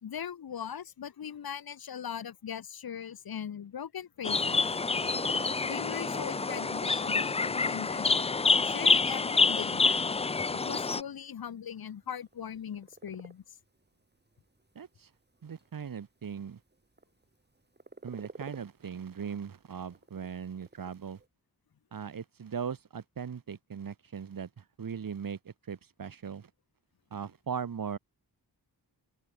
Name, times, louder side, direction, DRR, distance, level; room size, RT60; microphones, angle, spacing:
voice 1, 0.0-4.6 5.7-10.1 10.5-13.4, left 8 dB, 65° left, 1.1 m, -40 dB
sound 1, 4.2-11.0, left 4 dB, 15° left, 0.3 m, -27 dB
sound 2, 4.6-21.3, right 2 dB, 25° right, 6.3 m, -50 dB
voice 2, 14.7-15.1 15.4-16.6 18.0-21.2 21.9-26.5 27.1-28.0, right 7 dB, 60° right, 1.5 m, -39 dB
open air
wide cardioid pair, 90°, 38 cm